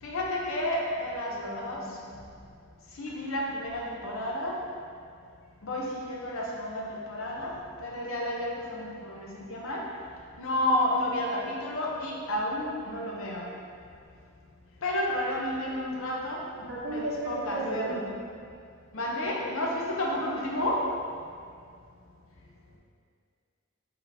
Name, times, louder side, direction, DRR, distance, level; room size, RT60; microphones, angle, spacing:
voice 1, 0.0-1.8 3.0-4.6 5.6-7.5 7.8-9.8 10.4-13.5 14.8-16.4 16.9-18.0 18.9-20.8, left 1 dB, 65° left, -2 dB, 0.7 m, -31 dB
voice 2, 1.3-2.4 16.6-18.1, right 1 dB, 85° right, -8 dB, 0.8 m, -35 dB
4.0 x 3.7 x 2.7 m, 2.3 s
head